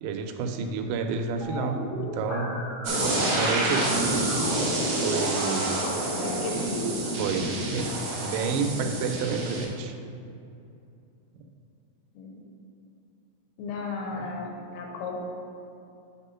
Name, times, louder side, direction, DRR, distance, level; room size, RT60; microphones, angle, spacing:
voice 1, 0.0-2.6 3.4-3.9 5.0-5.8 7.2-7.9 8.2-10.0 14.1-14.2, right 5 dB, 90° right, 5 dB, 3.3 m, -30 dB
sound 1, 1.4-6.4, left 1 dB, 70° left, 1.6 m, -35 dB
sound 2, 2.8-9.6, right 2 dB, 55° right, 2.6 m, -28 dB
voice 2, 3.2-4.2 6.1-7.0 12.2-12.4 13.6-15.2, left 3 dB, 85° left, 0 dB, 3.6 m, -35 dB
9.4 x 3.7 x 5.5 m, 2.6 s
omnidirectional pair, 5.8 m